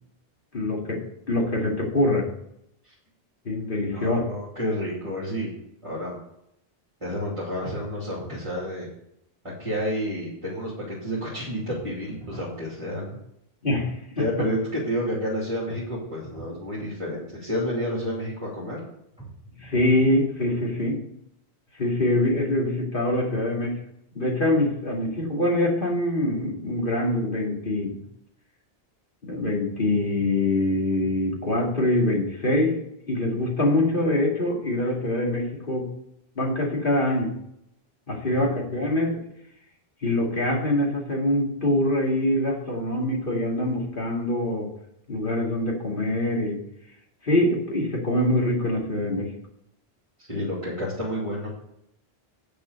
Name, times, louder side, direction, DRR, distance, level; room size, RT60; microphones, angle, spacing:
voice 1, 0.5-1.0 1.3-2.3 3.4-4.2 13.6-14.2 19.6-21.0 21.8-23.8 24.1-27.9 29.2-32.8 33.1-35.9 36.4-37.3 38.1-39.2 40.0-44.7 45.1-46.6 47.2-49.3, left 1 dB, 55° left, -2 dB, 2.4 m, -24 dB
voice 2, 3.9-5.5 5.8-6.2 7.0-8.9 9.4-13.2 14.2-18.8 38.2-38.5 50.3-51.5, equal, 30° right, -7 dB, 2.9 m, -30 dB
sound 1, 7.6-8.5 11.7-12.6 15.7-16.6 19.2-20.1, right 1 dB, 5° right, 3.5 m, -43 dB
8.3 x 7.0 x 6.5 m, 0.77 s
omnidirectional pair, 1.1 m